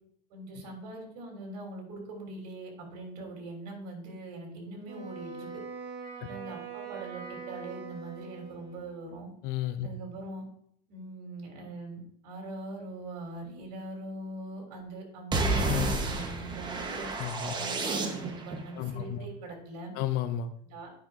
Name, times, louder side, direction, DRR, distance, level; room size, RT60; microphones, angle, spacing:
voice 1, 0.3-5.5 6.2-9.3 9.8-10.4 10.9-17.1 17.5-19.9 20.6-20.9, right 2 dB, 70° right, 2 dB, 2.9 m, -42 dB
Wind instrument woodwind instrument, 4.8-9.0, right 5 dB, 50° right, 1.4 m, -42 dB
voice 2, 9.4-9.9 15.7-15.9 17.2-17.6 18.8-19.3 19.9-20.5, left 10 dB, 50° left, 10 dB, 0.6 m, -32 dB
sound 1, 15.3-18.6, right 3 dB, 20° right, 0.9 m, -30 dB
9.4 x 5.7 x 2.5 m, 0.67 s
supercardioid pair, 140°, 21 cm